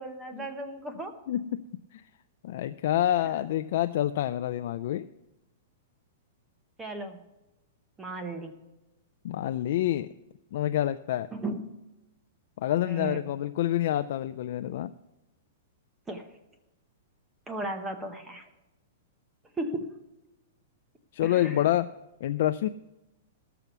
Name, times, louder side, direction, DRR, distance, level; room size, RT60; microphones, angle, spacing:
voice 1, 0.0-1.1 6.8-7.2 8.0-8.5 11.3-11.6 12.9-13.3 16.1-16.3 17.5-18.5 19.6-19.9 21.2-21.7, right 2 dB, 10° right, 6 dB, 0.8 m, -35 dB
voice 2, 1.3-1.6 1.9-2.0 2.4-5.1 9.2-10.1 10.5-11.3 12.6-14.9 21.1-21.9 22.2-22.7, left 12 dB, 55° left, 10 dB, 0.3 m, -27 dB
13.5 x 6.8 x 5.9 m, 0.98 s
hypercardioid pair, 160°, 0 cm